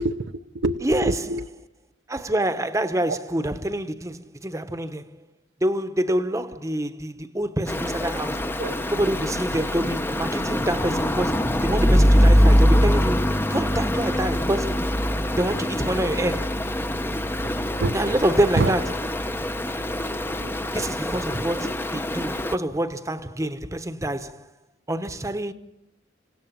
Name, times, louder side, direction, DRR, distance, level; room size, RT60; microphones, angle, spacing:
voice 1, 0.0-1.4 3.1-3.2 8.6-8.7 17.4-17.5 17.8-18.0 18.6-18.7 20.4-20.7 21.3-21.4, right 2 dB, 70° right, 0.8 m, -26 dB
voice 2, 0.8-1.1 2.1-5.2 5.6-8.6 8.9-14.8 15.4-16.6 17.9-18.9 20.7-24.4 24.9-25.5, right 1 dB, 15° right, 1.0 m, -26 dB
Stream, 7.7-22.5, equal, 10° left, 0.7 m, -23 dB
27.5 x 17.5 x 7.4 m
head